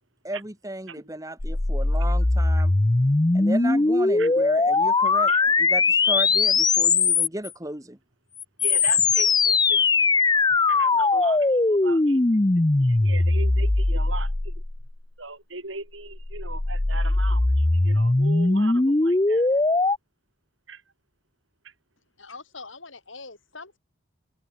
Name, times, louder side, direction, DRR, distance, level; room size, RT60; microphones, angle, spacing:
voice 1, 0.2-2.7 3.3-5.3 5.6-8.0, right 1 dB, 15° right, 1.7 m, -34 dB
sound 1, 1.4-7.5 8.4-15.0 16.0-20.0, left 3 dB, 20° left, 0.5 m, -21 dB
voice 2, 8.6-10.1 10.7-12.2 12.8-14.5 15.2-19.5 20.7-20.8 21.6-21.7, right 3 dB, 70° right, 6.8 m, -38 dB
voice 3, 22.2-23.8, left 4 dB, 70° left, 6.0 m, -43 dB
open air
head